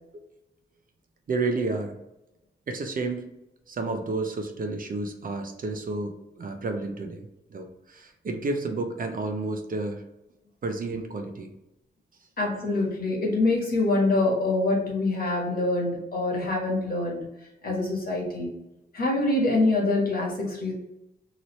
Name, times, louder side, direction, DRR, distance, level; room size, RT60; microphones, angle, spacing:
voice 1, 1.3-2.0 2.7-3.2 3.7-10.0 10.6-11.5, right 3 dB, 50° right, 4 dB, 0.5 m, -31 dB
voice 2, 12.4-17.3 17.6-18.5 18.9-20.7, left 2 dB, 55° left, -2 dB, 1.3 m, -25 dB
3.0 x 2.7 x 3.0 m, 0.88 s
wide cardioid pair, 105°, 19 cm